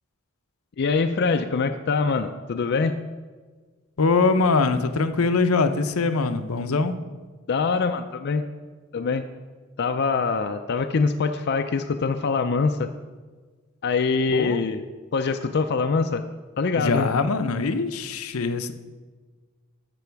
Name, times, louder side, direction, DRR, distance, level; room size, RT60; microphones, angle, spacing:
voice 1, 0.8-3.0 7.5-8.4 8.9-9.2 9.8-12.9 13.8-14.9 15.1-16.2 16.6-17.1, left 4 dB, 50° left, 7 dB, 0.4 m, -24 dB
voice 2, 4.0-6.9 14.3-14.6 16.7-18.7, left 4 dB, 85° left, 8 dB, 0.7 m, -22 dB
14.0 x 5.9 x 4.6 m, 1.4 s
head